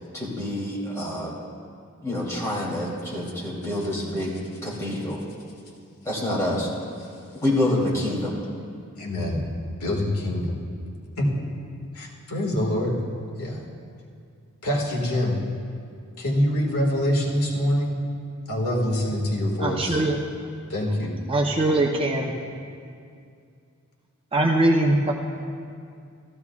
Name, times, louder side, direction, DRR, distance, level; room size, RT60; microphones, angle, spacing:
voice 1, 0.0-1.4 2.0-4.4 4.6-5.2 6.0-6.7 7.4-8.4, left 1 dB, 15° left, -6 dB, 3.0 m, -27 dB
voice 2, 9.0-9.4 9.8-10.6 11.2-11.4 11.9-13.0 13.4-13.6 14.6-15.4 16.2-18.0 18.5-20.0 20.7-21.1, left 1 dB, 80° left, -2 dB, 2.0 m, -25 dB
voice 3, 19.6-20.2 21.3-22.3 24.3-25.1, right 2 dB, 25° right, 0 dB, 0.7 m, -21 dB
15.5 x 14.5 x 2.4 m, 2.3 s
head